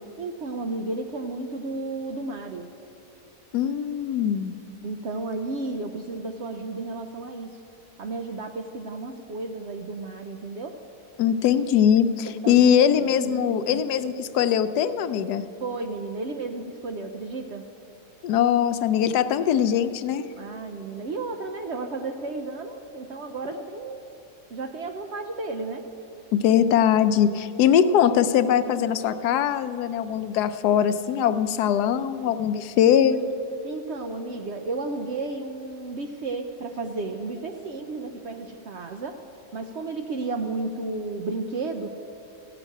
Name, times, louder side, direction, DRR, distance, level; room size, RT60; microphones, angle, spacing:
voice 1, 0.2-2.7 4.8-7.6 8.0-10.8 12.4-13.8 15.6-17.7 20.4-24.0 24.5-25.9 33.6-39.2 39.5-41.9, right 3 dB, 60° right, 5 dB, 0.7 m, -33 dB
voice 2, 3.5-4.5 11.2-15.4 18.2-20.2 26.3-33.2, left 9 dB, 85° left, 11 dB, 1.1 m, -21 dB
14.5 x 5.9 x 8.9 m, 2.8 s
omnidirectional pair, 1.7 m